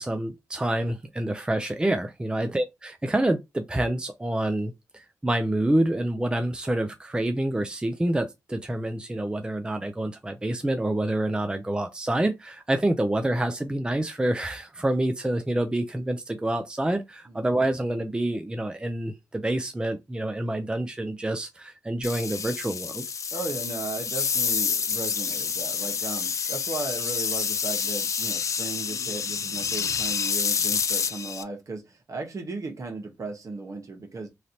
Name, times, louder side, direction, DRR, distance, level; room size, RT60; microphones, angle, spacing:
voice 1, 0.0-23.0, right 1 dB, 15° right, 0.5 m, -27 dB
sound 1, 22.0-31.4, left 6 dB, 55° left, 0.3 m, -28 dB
voice 2, 23.3-34.3, right 3 dB, 60° right, 1.1 m, -36 dB
3.2 x 2.5 x 2.8 m
cardioid pair, 55°, 6 cm